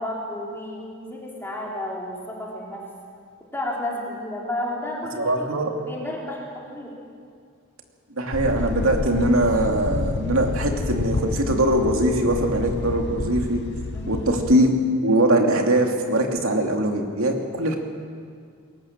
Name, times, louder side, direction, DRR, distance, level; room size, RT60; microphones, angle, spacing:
voice 1, 0.0-2.8 3.5-5.5 5.8-6.9 13.9-14.2, left 1 dB, 10° left, -3 dB, 3.5 m, -32 dB
voice 2, 5.2-5.7 8.1-13.6 14.1-14.8 15.0-17.8, right 1 dB, 85° right, 2 dB, 2.6 m, -21 dB
sound 1, 8.3-14.5, left 3 dB, 55° left, 0.5 m, -29 dB
21.5 x 19.0 x 7.5 m, 2.2 s
head